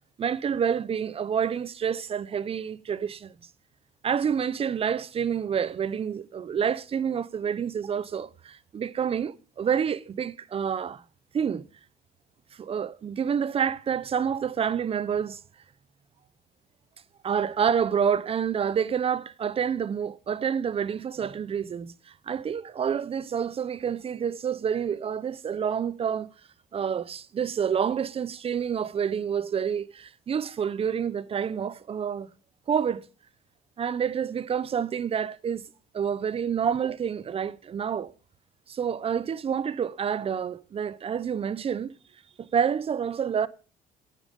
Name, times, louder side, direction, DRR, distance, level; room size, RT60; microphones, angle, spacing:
voice 1, 0.2-3.3 4.0-11.0 11.3-11.6 12.6-15.4 17.2-21.9 22.3-26.3 26.7-32.3 32.7-33.0 33.8-35.6 35.9-38.1 38.7-41.9 42.4-43.5, right 7 dB, 35° right, 0.6 m, -28 dB
9.2 x 9.0 x 5.0 m
cardioid pair, 110°, 17 cm